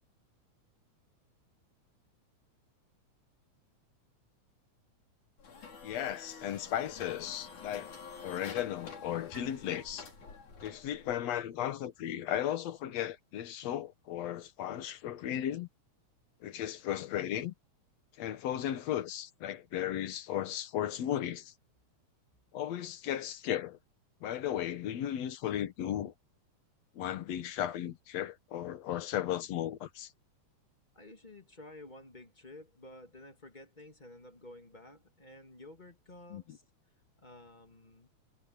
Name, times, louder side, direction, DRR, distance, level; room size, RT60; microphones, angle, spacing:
sound 1, 5.4-11.2, left 5 dB, 80° left, 6.1 m, -48 dB
voice 1, 5.8-7.9 8.2-10.1 10.6-15.7 16.4-17.5 18.2-21.5 22.5-23.8 24.2-26.1 26.9-30.1 36.3-36.4, left 11 dB, 65° left, 2.4 m, -35 dB
voice 2, 30.9-36.6 37.2-38.1, left 1 dB, 20° left, 1.8 m, -52 dB
omnidirectional pair, 3.4 m